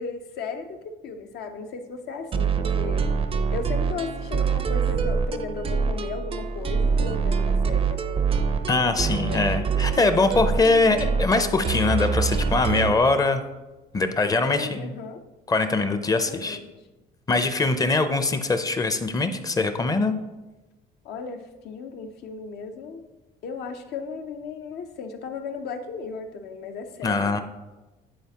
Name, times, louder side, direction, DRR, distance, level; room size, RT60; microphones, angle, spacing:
voice 1, 0.0-3.1 3.5-8.7 9.1-10.1 14.3-15.2 16.1-16.7 21.0-23.0 23.4-27.4, left 5 dB, 75° left, 6 dB, 0.7 m, -36 dB
sound 1, 2.3-13.0, right 5 dB, 35° right, 0.4 m, -25 dB
voice 2, 8.7-13.4 13.9-14.9 15.5-16.6 17.3-20.2 27.0-27.4, left 3 dB, 20° left, 9 dB, 0.5 m, -22 dB
10.5 x 4.2 x 2.9 m, 1.1 s
cardioid pair, 110°, 17 cm